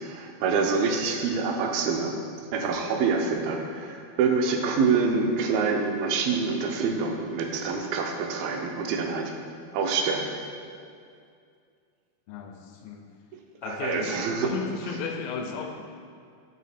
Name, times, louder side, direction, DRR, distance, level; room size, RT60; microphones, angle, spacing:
voice 1, 0.0-2.2 2.5-9.3 9.7-10.3 13.7-14.5, right 5 dB, 80° right, 3 dB, 2.4 m, -26 dB
voice 2, 12.3-13.1 13.6-15.8, left 5 dB, 80° left, 3 dB, 2.1 m, -34 dB
8.3 x 4.2 x 4.2 m, 2.3 s
omnidirectional pair, 4.4 m